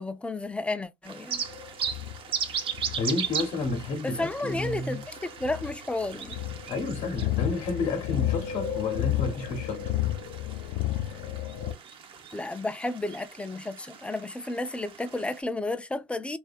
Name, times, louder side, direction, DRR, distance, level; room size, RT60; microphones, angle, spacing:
voice 1, 0.0-1.4 4.0-6.4 12.3-16.4, left 2 dB, 10° left, 0.4 m, -32 dB
sound 1, 1.0-15.4, right 7 dB, 50° right, 0.6 m, -38 dB
sound 2, 1.3-11.7, left 13 dB, 80° left, 0.5 m, -32 dB
voice 2, 2.9-5.1 6.7-9.9, left 3 dB, 60° left, 0.8 m, -31 dB
2.6 x 2.3 x 2.3 m
supercardioid pair, 90°, 11 cm